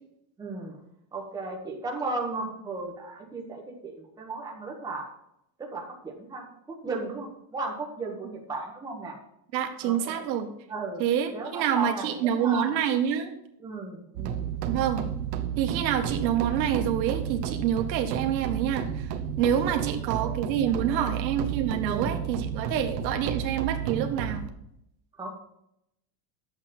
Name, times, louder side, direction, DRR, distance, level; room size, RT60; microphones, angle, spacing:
voice 1, 0.4-0.8 1.1-5.1 5.6-9.2 9.8-10.2 10.7-11.0 11.3-12.8 13.6-14.5 20.1-20.3 20.6-21.1 21.8-22.1 25.2-25.3, right 3 dB, 5° right, -1 dB, 1.2 m, -35 dB
voice 2, 9.5-10.5 11.0-13.3 14.7-15.1 15.6-24.4, right 9 dB, 90° right, 5 dB, 1.7 m, -27 dB
sound 1, 14.2-24.5, right 9 dB, 75° right, 1.1 m, -32 dB
10.5 x 7.8 x 4.3 m, 0.78 s
supercardioid pair, 175°, 50 cm